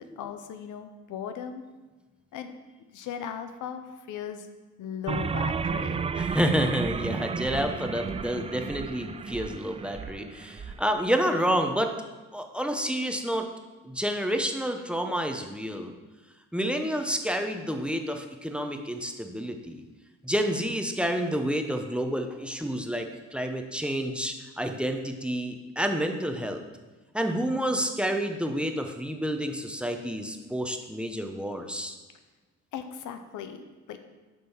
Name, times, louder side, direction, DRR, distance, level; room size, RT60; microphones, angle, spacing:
voice 1, 0.2-1.6 2.3-2.5 2.9-4.5 4.8-6.0 32.7-34.0, left 8 dB, 80° left, 8 dB, 0.8 m, -37 dB
sound 1, 5.1-10.8, right 5 dB, 20° right, 0.3 m, -32 dB
voice 2, 6.2-11.9 12.3-13.5 13.8-15.9 16.5-19.8 20.2-26.6 27.1-32.0, equal, 5° right, 4 dB, 0.8 m, -29 dB
7.8 x 5.3 x 5.7 m, 1.2 s
cardioid pair, 90°, 30 cm